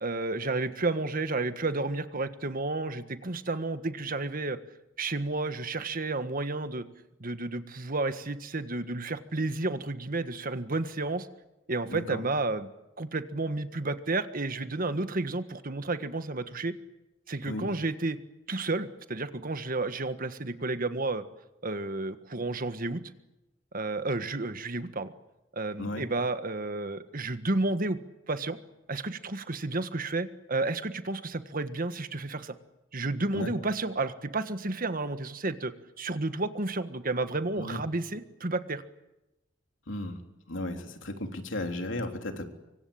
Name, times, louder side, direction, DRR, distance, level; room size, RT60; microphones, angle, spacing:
voice 1, 0.0-4.6 5.0-6.8 7.2-11.3 11.7-12.7 13.0-16.7 17.3-18.2 18.5-21.2 21.6-23.0 23.7-25.1 25.5-28.0 28.3-28.6 28.9-32.5 32.9-35.7 36.0-38.8, right 2 dB, 45° right, 10 dB, 1.6 m, -31 dB
voice 2, 11.9-12.2 17.4-17.7 25.8-26.0 33.3-33.5 37.6-37.8 39.9-40.2 40.5-42.4, left 1 dB, 75° left, 5 dB, 3.5 m, -35 dB
25.5 x 24.5 x 8.7 m, 0.96 s
head